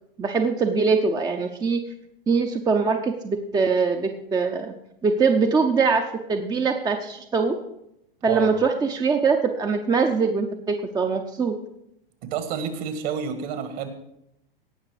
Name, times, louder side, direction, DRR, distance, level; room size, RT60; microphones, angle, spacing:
voice 1, 0.2-1.8 2.3-4.7 5.0-7.6 8.2-11.6, right 4 dB, 15° right, 5 dB, 0.6 m, -22 dB
voice 2, 12.2-13.9, right 7 dB, 50° right, 8 dB, 1.8 m, -29 dB
17.5 x 5.9 x 4.9 m, 0.80 s
hypercardioid pair, 115°, 29 cm